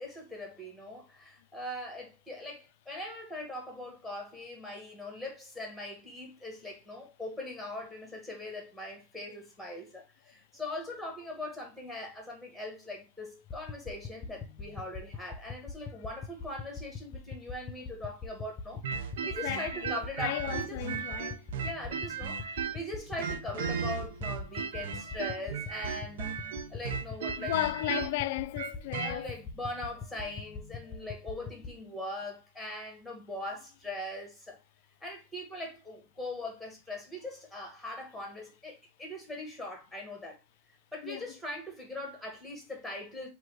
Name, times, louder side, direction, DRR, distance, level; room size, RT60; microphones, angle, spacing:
voice 1, 0.0-20.8 21.6-26.3 26.7-27.5 29.0-34.6 35.0-40.4 40.9-43.3, left 1 dB, ahead, 1.7 m, -41 dB
sound 1, 13.5-31.7, left 4 dB, 20° left, 0.8 m, -44 dB
sound 2, 18.8-22.9 23.2-29.2, right 7 dB, 75° right, 0.5 m, -36 dB
voice 2, 19.4-21.4 27.4-29.4 41.0-41.2, left 16 dB, 60° left, 0.3 m, -34 dB
3.9 x 2.8 x 4.7 m
supercardioid pair, 150°, 0 cm